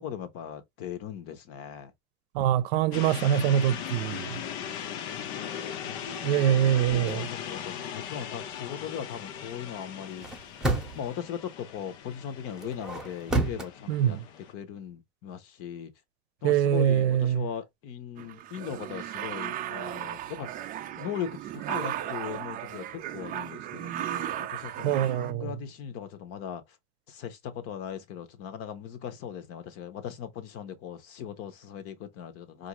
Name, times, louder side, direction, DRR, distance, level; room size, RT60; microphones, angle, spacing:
voice 1, 0.0-1.9 5.2-5.9 6.5-6.6 6.9-10.2 10.9-14.2 14.5-15.9 16.4-20.5 21.0-26.6 27.1-32.7, left 8 dB, 45° left, 0.8 m, -39 dB
voice 2, 2.3-4.4 6.2-7.3 13.9-14.2 16.4-17.5 24.8-25.5, right 10 dB, 70° right, 0.6 m, -24 dB
sound 1, 2.9-14.5, left 9 dB, 70° left, 0.9 m, -39 dB
sound 2, 6.8-7.2 10.1-11.2 12.6-13.7, right 2 dB, ahead, 0.8 m, -30 dB
sound 3, 18.2-25.3, right 12 dB, 25° right, 0.4 m, -36 dB
4.6 x 2.6 x 2.9 m
supercardioid pair, 140°, 33 cm